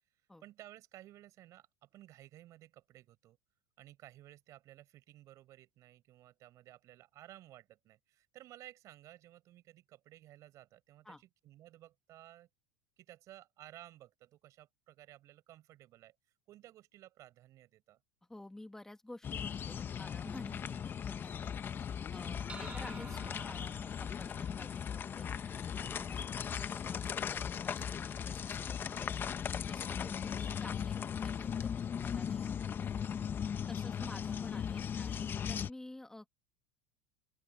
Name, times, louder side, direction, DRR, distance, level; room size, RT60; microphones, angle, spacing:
voice 1, 0.4-3.4 3.8-12.5 13.0-16.1 16.5-18.0 33.6-34.2, right 14 dB, 50° right, 6.8 m, -56 dB
voice 2, 18.3-21.6 22.1-24.8 25.1-29.1 29.7-32.9 33.7-36.3, left 1 dB, 5° left, 2.5 m, -52 dB
sound 1, 19.2-35.7, left 8 dB, 30° left, 1.4 m, -38 dB
sound 2, 22.5-27.1, right 4 dB, 15° right, 6.3 m, -53 dB
open air
supercardioid pair, 105°, 7 cm